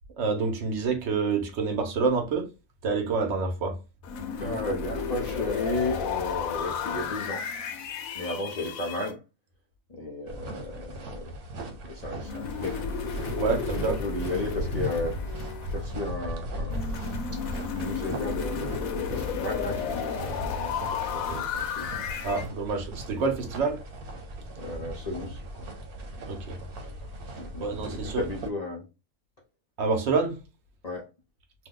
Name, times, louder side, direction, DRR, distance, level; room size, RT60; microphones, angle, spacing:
voice 1, 0.2-2.5 2.8-3.8 13.4-14.0 22.2-23.8 26.3-26.6 27.6-28.2 29.8-30.3, right 4 dB, 55° right, 1.0 m, -27 dB
sound 1, 4.0-9.1 12.2-16.0 16.7-22.5, left 6 dB, 75° left, 1.0 m, -33 dB
voice 2, 4.4-7.4 8.1-9.2 9.9-11.3 11.9-12.9 13.8-15.2 15.7-16.9 17.7-20.8 21.1-21.9 24.6-25.7 27.4-27.7 28.0-28.8 30.8-31.1, left 2 dB, 45° left, 0.5 m, -34 dB
sound 2, 10.3-28.5, equal, 85° right, 1.3 m, -37 dB
2.7 x 2.2 x 3.6 m
omnidirectional pair, 1.5 m